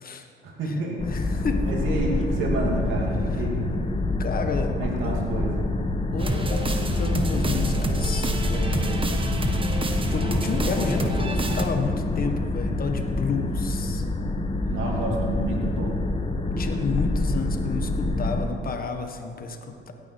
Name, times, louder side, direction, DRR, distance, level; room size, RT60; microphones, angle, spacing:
voice 1, 0.4-1.0 1.6-3.6 4.8-5.6 14.7-16.0, right 2 dB, 80° right, -1 dB, 2.7 m, -29 dB
sound 1, 1.0-18.5, left 2 dB, 30° left, 1.1 m, -26 dB
voice 2, 1.1-1.6 4.2-4.8 5.0-5.2 6.1-9.2 10.1-14.0 16.6-19.9, left 5 dB, 45° left, 5 dB, 1.4 m, -31 dB
sound 2, 6.2-11.7, right 2 dB, 25° right, 1.3 m, -28 dB
16.5 x 9.8 x 4.6 m, 2.4 s
cardioid pair, 90°, 20 cm